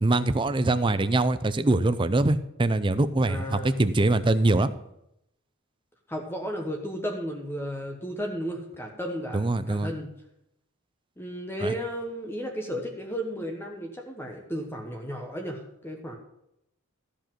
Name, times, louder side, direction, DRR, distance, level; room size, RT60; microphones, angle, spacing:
voice 1, 0.0-4.7 9.3-9.9 11.6-11.7, right 2 dB, 20° right, 12 dB, 0.5 m, -23 dB
voice 2, 3.3-3.8 6.1-10.1 11.2-16.2, equal, 10° left, 1 dB, 1.2 m, -34 dB
13.5 x 5.1 x 7.4 m, 0.80 s
head